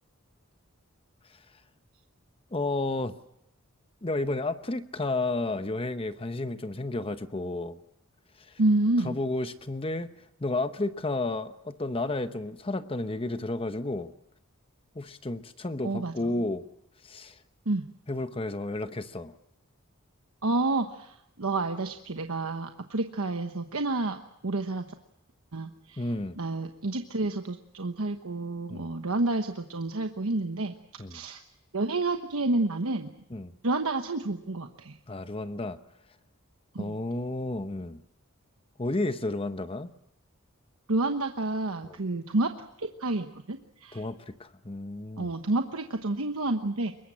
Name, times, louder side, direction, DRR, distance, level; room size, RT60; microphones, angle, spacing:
voice 1, 2.5-3.1 4.0-7.8 9.0-10.1 10.4-14.1 14.9-16.6 17.0-17.4 18.1-19.3 26.0-26.4 28.7-28.9 31.0-31.2 33.3-33.5 35.1-35.8 36.8-38.0 38.8-39.9 41.8-42.0 43.9-45.3, left 2 dB, 25° left, 11 dB, 0.9 m, -32 dB
voice 2, 8.6-9.2 15.8-16.3 17.7-17.9 20.4-24.2 24.4-24.9 25.5-26.1 26.4-30.7 31.1-31.4 31.7-33.1 33.6-34.9 36.7-37.0 40.9-42.5 42.8-44.0 45.2-46.9, right 2 dB, 90° right, 6 dB, 1.2 m, -29 dB
24.0 x 22.0 x 7.5 m, 0.81 s
head